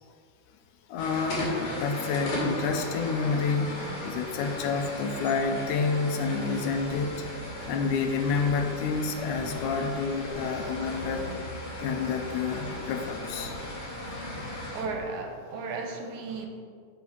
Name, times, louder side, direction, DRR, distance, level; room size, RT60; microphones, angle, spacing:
voice 1, 0.9-7.2 7.7-11.3 11.8-13.5 14.3-14.5, left 5 dB, 80° left, 4 dB, 2.2 m, -29 dB
sound 1, 1.0-14.8, left 1 dB, 40° left, 3.1 m, -36 dB
sound 2, 6.7-15.0, right 1 dB, 25° right, 2.2 m, -46 dB
voice 2, 14.7-16.5, right 4 dB, 75° right, 3 dB, 2.2 m, -35 dB
8.3 x 5.5 x 5.9 m, 2.1 s
omnidirectional pair, 3.6 m